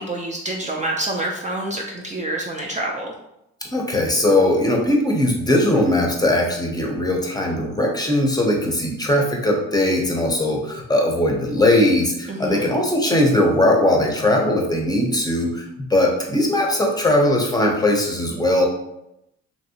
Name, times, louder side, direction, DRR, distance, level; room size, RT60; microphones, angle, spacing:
voice 1, 0.0-3.1 12.3-12.7, right 1 dB, 25° right, -1 dB, 0.4 m, -27 dB
voice 2, 3.6-18.7, left 1 dB, 15° left, 0 dB, 0.6 m, -19 dB
2.9 x 2.6 x 2.7 m, 0.83 s
cardioid pair, 90°, 30 cm